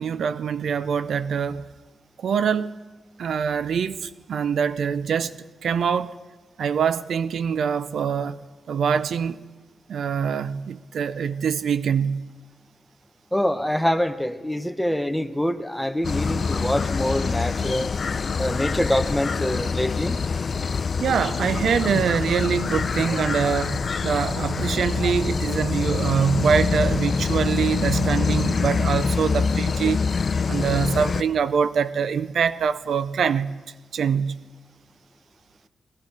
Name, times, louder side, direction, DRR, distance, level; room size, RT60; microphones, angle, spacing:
voice 1, 0.0-1.6 2.2-2.7 3.2-5.3 5.6-6.1 6.6-8.4 8.7-9.4 9.9-12.3 21.0-30.0 30.5-33.5 33.9-34.4, right 7 dB, 80° right, 0.4 m, -24 dB
voice 2, 13.3-17.9 18.4-20.2, left 1 dB, ahead, 0.8 m, -25 dB
sound 1, 16.0-31.2, left 5 dB, 55° left, 0.5 m, -25 dB
18.0 x 12.5 x 4.7 m
cardioid pair, 80°, 0 cm